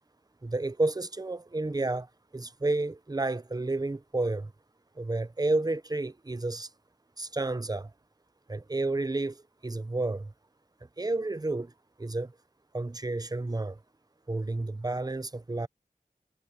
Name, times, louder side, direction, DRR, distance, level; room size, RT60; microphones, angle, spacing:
voice 1, 0.4-2.1 2.3-4.5 5.0-6.7 7.2-7.9 8.5-10.3 11.0-11.7 12.0-12.3 12.7-13.8 14.3-15.7, right 2 dB, 25° right, 0.7 m, -31 dB
wide cardioid pair, 55°, 15 cm